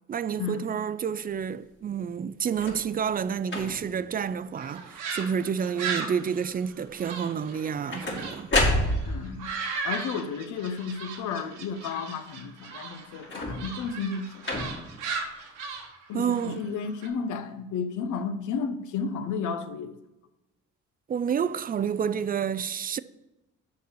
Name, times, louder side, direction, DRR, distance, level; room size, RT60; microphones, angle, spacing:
voice 1, 0.1-8.5 16.1-16.6 21.1-23.0, right 7 dB, 30° right, 0.4 m, -29 dB
sound 1, 2.5-2.9 3.4-4.0 4.6-5.0 5.2-5.8 7.5-9.4 13.2-13.8 14.4-15.0 15.8-15.9, left 1 dB, 40° left, 2.2 m, -29 dB
sound 2, 4.6-8.4 8.8-17.1, right 5 dB, 90° right, 1.4 m, -37 dB
voice 2, 9.1-9.5 9.8-14.7 16.1-19.9, left 5 dB, 80° left, 0.8 m, -33 dB
6.7 x 5.3 x 6.2 m
cardioid pair, 90°, 30 cm